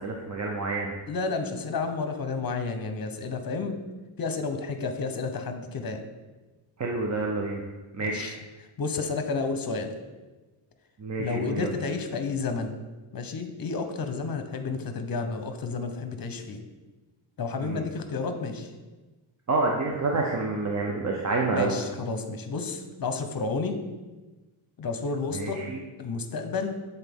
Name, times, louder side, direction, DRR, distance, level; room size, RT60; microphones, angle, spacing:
voice 1, 0.0-0.9 6.8-7.6 7.9-8.3 11.0-11.7 17.6-17.8 19.5-21.8 25.3-25.8, right 3 dB, 35° right, 0 dB, 0.6 m, -28 dB
voice 2, 1.1-3.8 4.2-6.0 8.0-8.4 8.8-9.9 11.2-12.7 13.1-16.6 17.4-18.7 21.5-23.8 24.8-25.6 26.0-26.8, left 4 dB, 45° left, 7 dB, 0.8 m, -31 dB
8.1 x 4.0 x 3.6 m, 1.2 s
wide cardioid pair, 105°, 49 cm